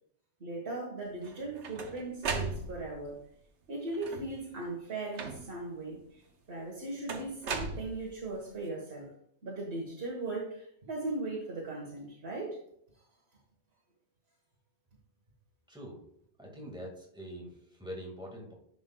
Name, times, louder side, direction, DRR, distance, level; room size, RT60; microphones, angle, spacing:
voice 1, 0.4-3.2 3.7-6.2 6.5-9.1 9.4-12.6, right 2 dB, 65° right, -2 dB, 1.6 m, -38 dB
sound 1, 1.2-3.1 3.9-4.5 5.2-5.7 7.1-8.4, right 4 dB, 80° right, 1.2 m, -37 dB
voice 2, 15.7-16.0 16.4-18.5, equal, 5° right, -2 dB, 1.8 m, -44 dB
10.5 x 6.1 x 2.3 m, 0.68 s
omnidirectional pair, 1.2 m